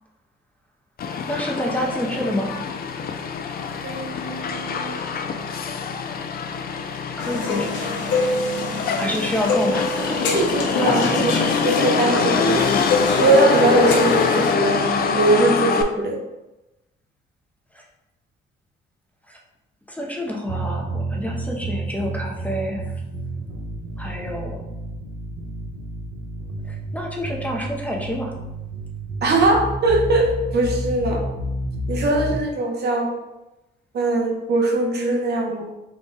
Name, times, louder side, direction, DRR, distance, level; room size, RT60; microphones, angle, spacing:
Motor vehicle (road), 1.0-15.8, left 5 dB, 50° left, 0.4 m, -24 dB
voice 1, 1.3-2.5 7.2-7.8 9.0-10.2 11.2-11.4 17.7-17.8 19.3-19.4 19.9-22.9 24.0-24.6 26.7-28.3, left 1 dB, 5° left, -1 dB, 0.7 m, -28 dB
voice 2, 3.8-5.0 10.3-12.6 13.2-16.2 29.2-31.2 31.9-33.1 33.9-35.7, right 2 dB, 55° right, 1 dB, 0.8 m, -21 dB
sound 1, 7.2-14.6, left 3 dB, 70° left, 0.8 m, -25 dB
sound 2, 20.5-32.4, right 1 dB, 80° right, 1.1 m, -30 dB
3.9 x 2.3 x 3.8 m, 0.98 s
cardioid pair, 90°, 20 cm